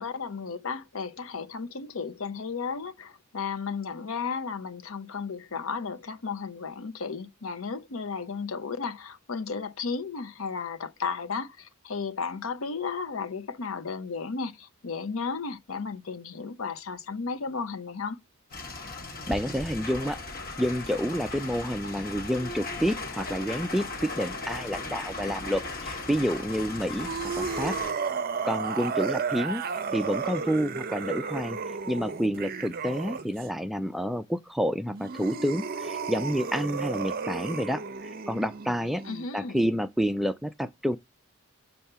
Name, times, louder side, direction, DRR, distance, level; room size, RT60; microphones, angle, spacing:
voice 1, 0.0-18.2 39.1-39.6, left 5 dB, 65° left, 0.7 m, -34 dB
sound 1, 18.5-27.9, left 3 dB, 45° left, 1.3 m, -37 dB
voice 2, 19.3-20.2 20.6-27.1 27.4-27.8 28.4-29.6 29.9-39.0 39.3-41.0, equal, ahead, 0.3 m, -29 dB
sound 2, 27.0-33.5 34.9-39.3, right 5 dB, 45° right, 0.6 m, -33 dB
6.7 x 2.7 x 5.5 m
head